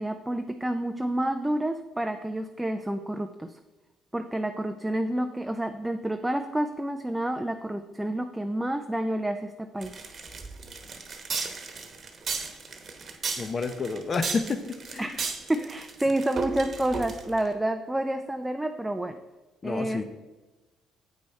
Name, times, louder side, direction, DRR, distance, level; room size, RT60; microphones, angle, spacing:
voice 1, 0.0-3.6 4.1-9.9 15.0-19.2 19.6-20.0, right 1 dB, 10° right, 7 dB, 0.4 m, -29 dB
sound 1, 9.8-17.5, right 4 dB, 45° right, 1.1 m, -35 dB
voice 2, 13.4-14.6 14.9-15.1 19.6-20.0, left 4 dB, 40° left, 9 dB, 0.8 m, -29 dB
8.1 x 5.2 x 4.4 m, 1.2 s
supercardioid pair, 75°, 0 cm